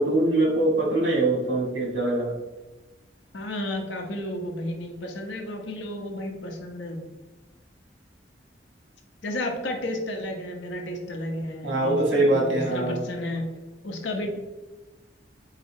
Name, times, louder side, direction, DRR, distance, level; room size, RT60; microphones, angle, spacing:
voice 1, 0.0-2.3 11.6-13.0, right 2 dB, 75° right, -1 dB, 1.4 m, -23 dB
voice 2, 3.3-7.0 9.2-12.0 12.3-13.5 13.8-14.3, left 1 dB, 85° left, 3 dB, 0.7 m, -32 dB
4.0 x 4.0 x 2.7 m, 1.1 s
head